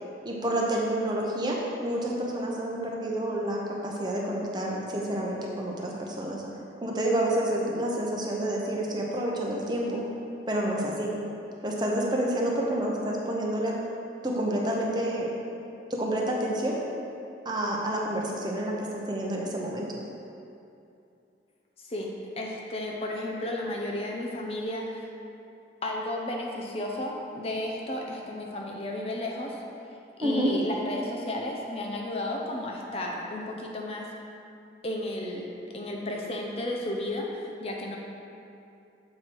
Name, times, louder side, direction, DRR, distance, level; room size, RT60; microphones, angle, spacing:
voice 1, 0.2-6.4 6.8-10.0 10.5-11.1 11.6-13.7 14.2-15.3 15.9-16.8 17.4-19.9 30.2-30.5, right 1 dB, 25° right, -2 dB, 0.8 m, -29 dB
voice 2, 21.8-25.1 25.8-29.6 30.2-34.1 34.8-35.5 35.7-38.0, left 1 dB, 35° left, -1 dB, 0.6 m, -33 dB
7.4 x 4.7 x 4.5 m, 2.7 s
head